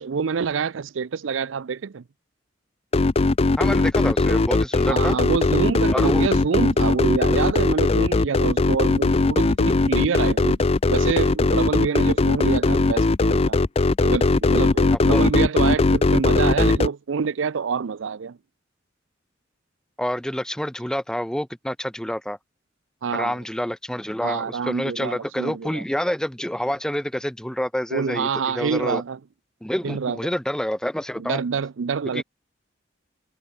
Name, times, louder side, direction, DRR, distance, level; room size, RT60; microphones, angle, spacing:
voice 1, 0.0-2.0 4.9-10.6 10.9-13.6 14.0-18.4 23.0-23.4 24.2-25.8 27.9-29.2 29.8-30.3 31.2-32.2, right 5 dB, 80° right, 0.5 m, -26 dB
sound 1, 2.9-16.9, left 3 dB, 30° left, 0.5 m, -19 dB
voice 2, 3.6-5.2 5.9-6.3 15.1-15.3 20.0-22.4 23.1-29.0 29.6-31.4 32.1-32.2, equal, 5° left, 1.0 m, -28 dB
head